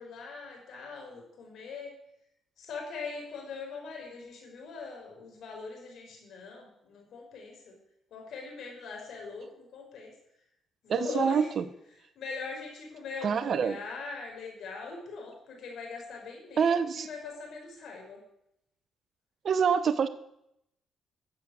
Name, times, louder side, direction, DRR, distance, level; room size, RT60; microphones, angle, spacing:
voice 1, 0.0-1.9 2.6-7.8 8.1-10.1 10.8-11.5 12.2-18.2, left 4 dB, 70° left, 1 dB, 6.0 m, -41 dB
voice 2, 10.9-11.6 13.2-13.8 16.6-17.1 19.4-20.1, right 6 dB, 55° right, 13 dB, 1.2 m, -26 dB
14.0 x 7.8 x 8.2 m, 0.78 s
cardioid pair, 90°, 0 cm